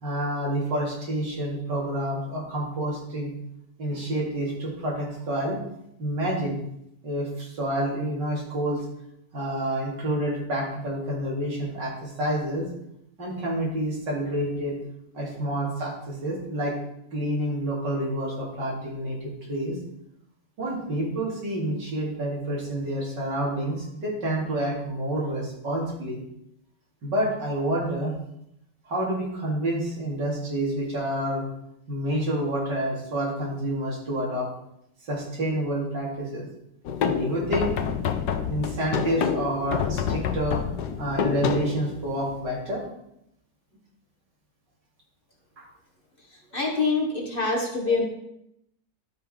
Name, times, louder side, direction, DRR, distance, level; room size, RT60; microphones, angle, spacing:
voice 1, 0.0-3.3 3.8-5.6 6.0-6.6 7.0-8.8 9.3-12.7 13.2-14.8 15.1-16.7 17.1-19.2 19.5-19.8 20.6-26.2 27.0-28.1 28.9-31.4 31.9-34.5 35.1-36.5 37.0-37.7 38.5-40.6 41.0-42.8, right 1 dB, 80° right, -3 dB, 3.7 m, -28 dB
sound 1, 36.9-42.4, left 7 dB, 75° left, 1.4 m, -28 dB
voice 2, 46.5-48.1, left 3 dB, 35° left, 1 dB, 1.5 m, -25 dB
12.5 x 5.7 x 5.2 m, 0.78 s
omnidirectional pair, 1.9 m